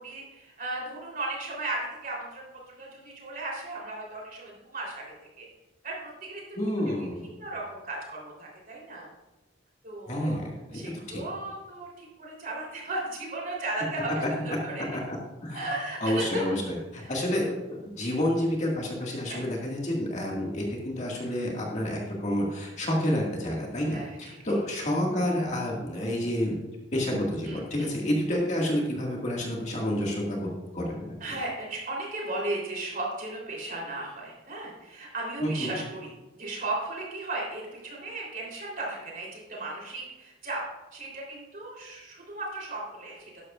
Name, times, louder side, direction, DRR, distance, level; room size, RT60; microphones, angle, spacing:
voice 1, 0.0-5.0 5.4-5.5 5.8-6.4 6.8-9.1 9.8-10.4 10.7-14.8 15.5-16.4 17.0-17.3 19.2-19.4 23.9-24.4 27.4-27.9 31.2-40.6 40.9-43.2, right 2 dB, 45° right, -3 dB, 3.5 m, -36 dB
voice 2, 6.6-7.2 10.1-10.8 11.1-11.2 14.8-15.0 15.4-15.7 16.0-26.6 26.9-30.5 30.7-31.2 35.4-35.8, left 1 dB, 35° left, -2 dB, 1.9 m, -29 dB
12.5 x 11.0 x 2.4 m, 1.0 s
head